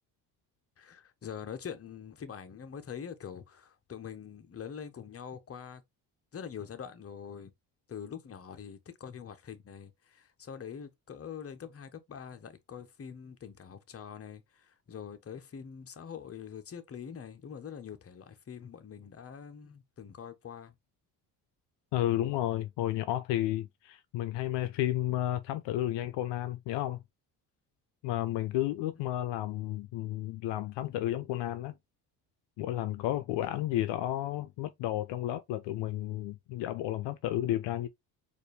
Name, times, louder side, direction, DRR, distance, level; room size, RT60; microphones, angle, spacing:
voice 1, 0.8-5.8 6.3-7.5 7.9-20.7, left 7 dB, 30° left, 0.8 m, -44 dB
voice 2, 21.9-27.0 28.0-31.7 32.6-37.9, left 13 dB, 75° left, 0.5 m, -32 dB
4.2 x 2.6 x 3.1 m
supercardioid pair, 70°, 43 cm